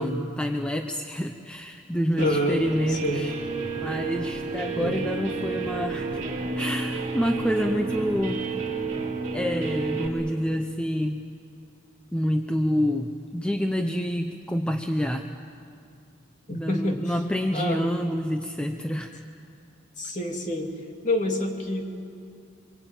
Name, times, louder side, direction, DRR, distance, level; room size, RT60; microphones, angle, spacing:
voice 1, 0.0-3.3 3.8-6.1 6.6-8.5 9.3-11.2 12.1-15.3 16.5-19.1, equal, 5° left, 5 dB, 0.7 m, -27 dB
voice 2, 2.2-2.6 2.9-3.3 4.8-5.0 16.5-17.1 17.5-17.9 20.0-20.7 21.0-21.9, left 1 dB, 35° left, 2 dB, 2.7 m, -27 dB
Guitar, 2.2-10.1, right 4 dB, 35° right, 3.0 m, -30 dB
25.5 x 23.5 x 9.0 m, 2.4 s
head